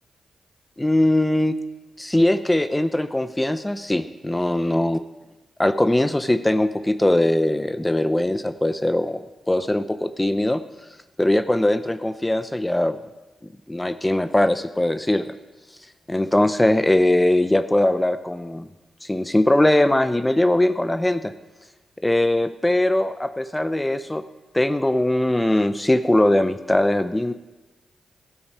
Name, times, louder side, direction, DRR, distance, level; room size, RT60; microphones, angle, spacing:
voice 1, 0.8-1.5 2.0-5.0 5.6-10.6 11.2-13.0 13.7-15.2 16.1-18.7 19.0-21.3 22.0-24.2 24.5-27.3, left 1 dB, 15° left, 10 dB, 0.7 m, -20 dB
16.0 x 8.7 x 4.3 m, 1.1 s
supercardioid pair, 45°, 0 cm